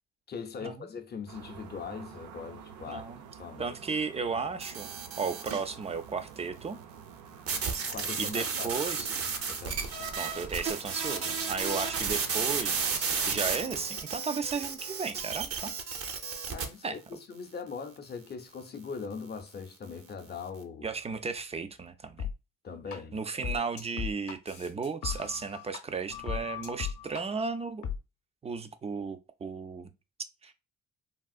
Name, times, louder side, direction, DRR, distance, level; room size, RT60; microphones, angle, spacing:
voice 1, 0.3-3.0 3.4-3.7 7.9-8.7 9.0-10.1 16.5-20.9 22.6-23.2, left 5 dB, 35° left, 0.6 m, -41 dB
sound 1, 1.3-13.9, right 7 dB, 85° right, 0.5 m, -49 dB
voice 2, 2.9-3.2 3.6-4.9 5.2-6.8 8.2-9.1 10.2-15.7 16.8-17.0 20.8-22.3 22.9-27.8 28.4-29.9 30.4-30.5, right 5 dB, 20° right, 0.3 m, -35 dB
sound 2, 4.6-5.7 7.5-16.7, right 5 dB, 50° right, 0.7 m, -33 dB
sound 3, 22.2-22.3 22.9-23.0 23.4-25.8 26.1-27.2 27.8-28.0, left 8 dB, 70° left, 0.7 m, -36 dB
3.5 x 2.4 x 2.3 m
cardioid pair, 90°, 30 cm